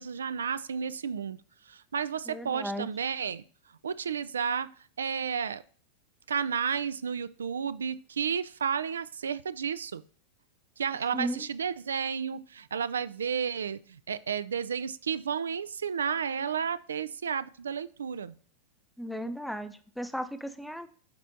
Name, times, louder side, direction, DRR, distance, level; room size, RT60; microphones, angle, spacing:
voice 1, 0.0-1.4 1.7-3.4 3.8-4.7 5.0-5.6 6.3-10.0 10.8-18.3, right 7 dB, 70° right, 15 dB, 0.3 m, -32 dB
voice 2, 2.3-2.9 11.1-11.5 19.0-20.9, equal, ahead, 9 dB, 0.6 m, -35 dB
11.5 x 4.3 x 2.7 m, 0.43 s
figure-of-eight pair, 90°, 0 cm